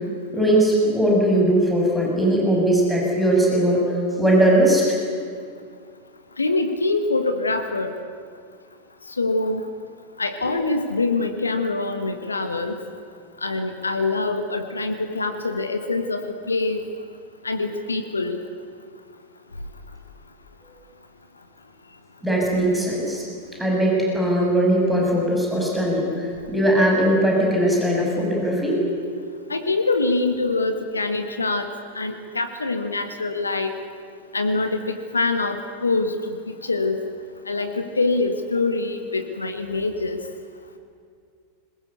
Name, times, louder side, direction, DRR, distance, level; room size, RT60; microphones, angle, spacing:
voice 1, 0.3-3.9 4.2-4.9 22.2-23.2 23.6-28.8, right 1 dB, 5° right, -2 dB, 6.3 m, -19 dB
voice 2, 6.4-7.9 9.2-9.6 10.2-12.7 13.4-16.8 17.4-18.4 29.5-31.7 31.9-33.7 34.3-36.1 36.5-37.0 37.5-40.2, left 3 dB, 80° left, 8 dB, 1.4 m, -24 dB
21.5 x 21.0 x 8.3 m, 2.2 s
figure-of-eight pair, 90°, 0 cm